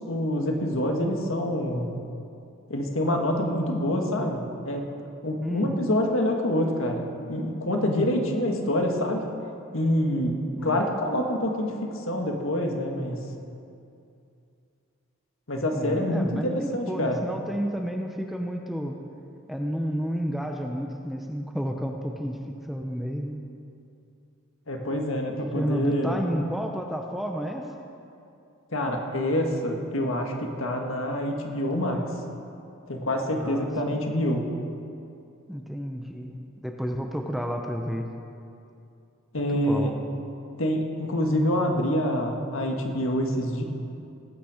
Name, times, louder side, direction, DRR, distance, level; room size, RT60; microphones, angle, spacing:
voice 1, 0.1-1.9 2.7-4.8 5.2-7.0 7.3-9.2 9.7-11.7 12.1-13.2 15.5-17.2 24.7-26.2 28.7-32.1 32.9-34.4 39.3-39.9 40.6-43.6, left 1 dB, 75° left, 2 dB, 1.7 m, -26 dB
voice 2, 5.4-5.7 10.6-10.8 15.7-18.9 19.5-22.4 22.6-23.4 25.5-27.6 33.4-34.0 35.5-38.1 39.5-39.9, equal, ahead, 2 dB, 0.7 m, -31 dB
19.5 x 9.2 x 5.0 m, 2.6 s
head